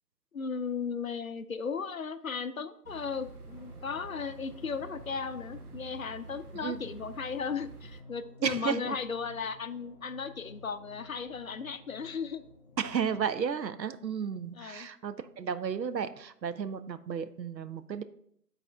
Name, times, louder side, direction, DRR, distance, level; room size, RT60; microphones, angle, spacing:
voice 1, 0.3-12.4 14.5-14.9, left 5 dB, 55° left, 11 dB, 0.5 m, -36 dB
sound 1, 2.8-8.0, right 4 dB, 65° right, 0.9 m, -48 dB
sound 2, 3.5-13.3, left 3 dB, 35° left, 1.0 m, -54 dB
voice 2, 8.4-9.0 12.8-18.0, right 7 dB, 90° right, 12 dB, 0.7 m, -33 dB
8.9 x 4.2 x 3.4 m, 0.69 s
figure-of-eight pair, 155°, 49 cm